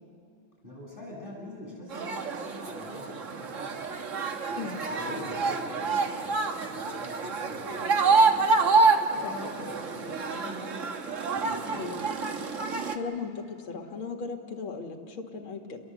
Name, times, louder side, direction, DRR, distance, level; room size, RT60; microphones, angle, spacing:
voice 1, 0.6-3.9 4.5-8.5 9.1-10.9 11.3-12.1, equal, 25° left, -4 dB, 8.2 m, -43 dB
sound 1, 1.9-13.0, right 4 dB, 45° right, 1.4 m, -27 dB
voice 2, 11.7-12.0 12.9-15.8, left 5 dB, 80° left, 2 dB, 2.7 m, -37 dB
29.0 x 21.5 x 8.1 m, 2.5 s
omnidirectional pair, 2.2 m